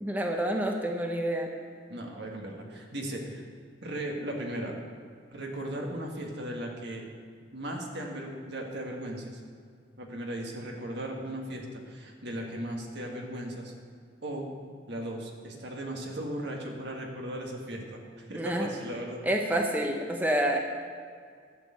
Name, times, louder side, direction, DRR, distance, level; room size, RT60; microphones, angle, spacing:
voice 1, 0.0-1.5 18.3-18.7 19.2-20.6, right 1 dB, 10° right, 2 dB, 0.7 m, -28 dB
voice 2, 1.9-3.4 3.8-4.7 5.3-7.0 7.5-9.4 10.0-13.7 14.2-14.5 14.9-19.2, right 1 dB, 65° right, 0 dB, 1.8 m, -37 dB
11.5 x 6.8 x 8.0 m, 2.1 s
head